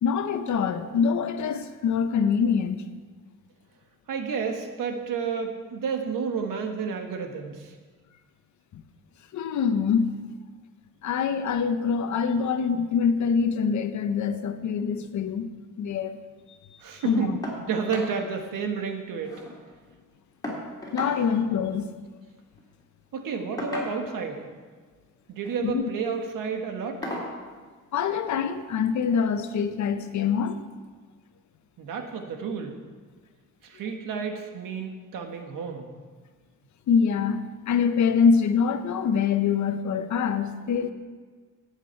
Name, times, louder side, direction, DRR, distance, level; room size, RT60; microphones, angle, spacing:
voice 1, 0.0-2.8 8.7-8.8 9.3-10.2 11.0-15.5 15.8-16.2 17.0-17.4 20.9-21.9 25.6-25.8 27.9-30.6 36.9-40.9, left 6 dB, 60° left, 0.9 m, -24 dB
voice 2, 4.1-7.8 16.8-19.4 23.1-24.5 25.3-27.1 31.8-32.8 33.6-35.9, right 6 dB, 75° right, 1.6 m, -31 dB
sound 1, 17.4-17.6 17.9-18.1 18.5-18.6 18.9-19.6 20.4-21.2 22.4-22.6 23.6-24.2 25.3-25.6 26.1-26.2 27.0-27.3 28.6-28.7 29.2-29.3, left 1 dB, 10° left, 2.8 m, -35 dB
17.5 x 8.3 x 4.5 m
cardioid pair, 160°, 33 cm